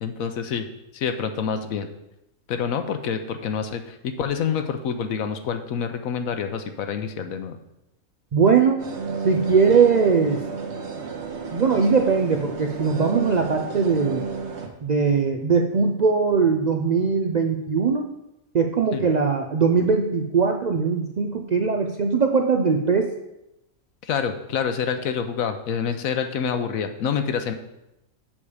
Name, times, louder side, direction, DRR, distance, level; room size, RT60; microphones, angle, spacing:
voice 1, 0.0-0.7 0.9-1.9 2.5-7.6 18.9-19.1 24.0-27.5, left 7 dB, 75° left, 8 dB, 1.1 m, -27 dB
voice 2, 8.3-8.8 9.2-10.4 11.5-14.3 14.8-18.0 18.5-23.1, right 5 dB, 85° right, 4 dB, 0.3 m, -20 dB
sound 1, 8.8-14.7, right 5 dB, 55° right, 1.2 m, -32 dB
7.1 x 6.9 x 4.9 m, 0.89 s
omnidirectional pair, 1.5 m